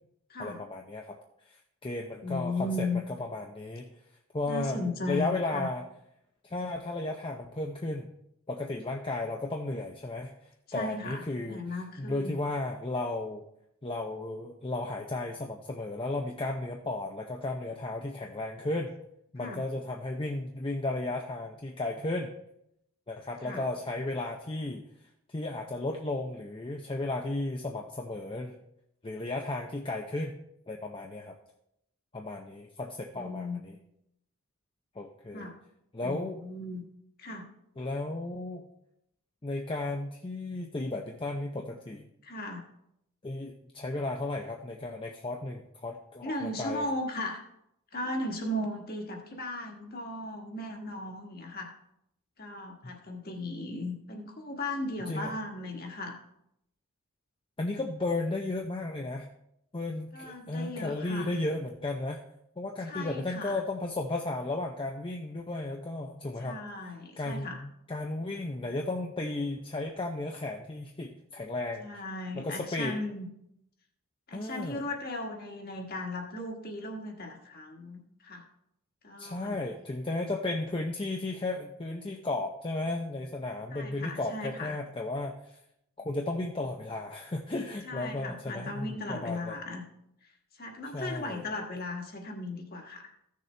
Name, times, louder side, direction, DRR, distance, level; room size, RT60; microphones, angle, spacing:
voice 1, 0.4-1.2 1.5-2.9 3.2-3.9 4.3-5.8 6.4-8.1 8.5-10.4 10.7-11.6 12.0-13.4 13.8-18.9 19.3-22.3 23.1-24.9 25.3-28.6 29.0-30.4 30.7-31.4 32.1-33.8 35.0-35.5 35.9-36.4 37.8-38.7 39.4-42.1 43.2-46.9 55.1-55.3 57.6-59.3 59.7-62.2 62.6-66.6 67.2-71.9 72.3-72.9 74.3-74.8 79.2-85.6 86.0-89.6 90.9-91.4, left 2 dB, 25° left, 1 dB, 0.6 m, -34 dB
voice 2, 2.2-3.0 4.5-5.7 10.7-12.4 19.4-19.6 23.4-23.6 33.1-33.6 35.3-35.5 36.0-36.8 37.2-37.4 42.2-42.7 46.2-47.5 47.9-51.7 52.4-56.2 60.1-61.3 62.9-63.6 66.4-67.6 71.8-73.3 74.3-78.4 79.0-79.6 83.7-84.8 87.8-89.8 90.6-93.1, left 2 dB, 40° left, 2 dB, 1.5 m, -36 dB
15.0 x 6.6 x 3.3 m, 0.78 s
head